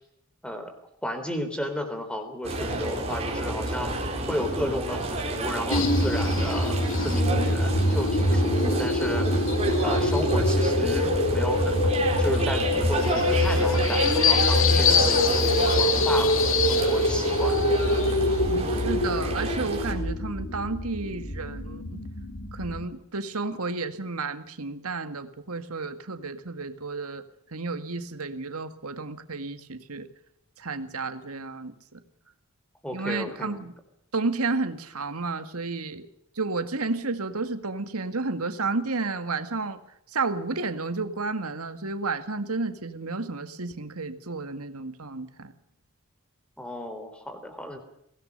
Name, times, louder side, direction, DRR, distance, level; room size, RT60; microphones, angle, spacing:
voice 1, 1.0-9.5 9.8-17.6 32.8-33.7 46.6-47.8, equal, 5° left, 7 dB, 3.7 m, -33 dB
sound 1, 2.4-19.9, right 2 dB, 30° right, 4.4 m, -30 dB
sound 2, 5.7-22.8, left 2 dB, 60° left, 2.5 m, -24 dB
voice 2, 18.5-22.0 22.5-27.2 27.5-30.1 30.6-32.0 32.9-33.7 34.1-36.1 36.4-39.8 40.1-45.5, right 3 dB, 85° right, 9 dB, 2.0 m, -31 dB
23.5 x 17.5 x 6.7 m, 0.75 s
head